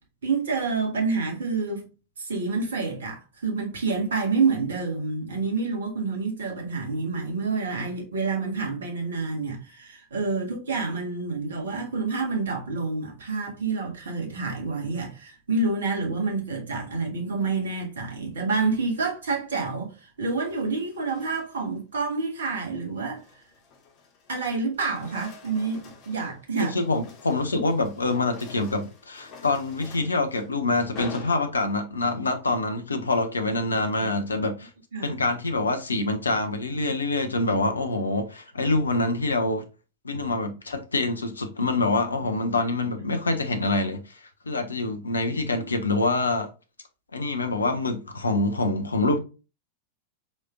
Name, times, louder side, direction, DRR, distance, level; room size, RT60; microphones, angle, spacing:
voice 1, 0.2-1.8 2.2-23.2 24.3-26.8 27.5-27.6 34.0-34.1 34.9-35.1 45.5-45.8, right 4 dB, 65° right, 1.7 m, -28 dB
sound 1, 18.7-19.1 20.2-21.8 22.2-22.5 23.0-24.4 24.7-32.0, left 5 dB, 40° left, 1.3 m, -47 dB
voice 2, 26.6-34.7 35.0-39.7 40.0-46.5 47.1-49.2, left 2 dB, 75° left, 0.8 m, -26 dB
5.0 x 4.2 x 2.3 m
figure-of-eight pair, 90°, 0 cm